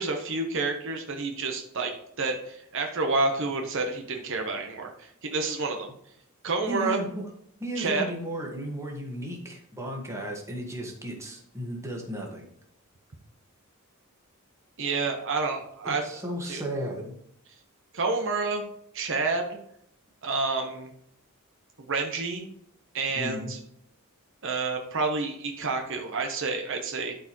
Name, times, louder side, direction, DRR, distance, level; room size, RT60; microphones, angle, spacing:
voice 1, 0.0-1.9 2.2-5.9 6.4-7.0 7.8-8.1 14.8-16.6 17.9-18.6 18.9-19.6 20.2-20.9 21.8-22.5 22.9-23.6 24.4-27.2, right 3 dB, 60° right, 4 dB, 1.0 m, -29 dB
voice 2, 6.7-7.3 7.6-12.5 15.8-17.1 23.1-23.5, right 1 dB, 15° right, 0 dB, 1.6 m, -34 dB
12.0 x 4.6 x 3.0 m, 0.71 s
head